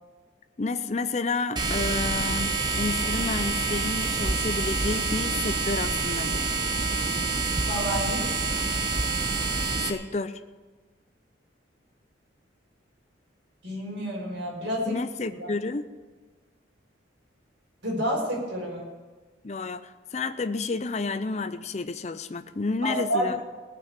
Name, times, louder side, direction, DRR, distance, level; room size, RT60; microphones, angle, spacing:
voice 1, 0.6-6.4 9.9-10.4 14.9-15.9 19.4-23.4, left 3 dB, 35° left, 10 dB, 0.5 m, -30 dB
sound 1, 1.6-9.9, right 3 dB, 20° right, 0.8 m, -27 dB
voice 2, 7.3-8.3 13.6-15.0 15.4-15.5 17.8-18.8 22.8-23.5, equal, 65° right, -3 dB, 5.7 m, -29 dB
18.5 x 6.2 x 8.3 m, 1.3 s
head